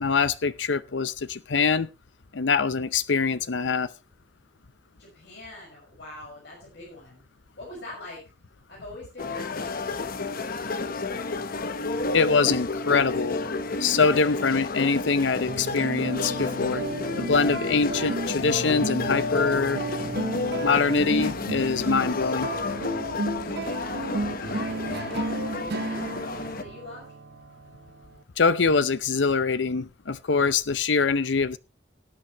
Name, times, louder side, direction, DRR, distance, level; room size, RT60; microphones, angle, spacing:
voice 1, 0.0-1.9 2.3-3.9 12.1-13.4 13.8-16.8 17.2-19.8 20.6-22.5 28.4-31.6, left 5 dB, 85° left, 0.7 m, -24 dB
voice 2, 5.0-7.2 7.6-8.2 8.7-10.8 23.5-27.1, left 1 dB, 70° left, 5.8 m, -45 dB
sound 1, 9.2-26.6, left 3 dB, 55° left, 1.1 m, -31 dB
sound 2, 15.5-28.2, right 2 dB, 65° right, 0.9 m, -33 dB
19.0 x 8.9 x 3.1 m
head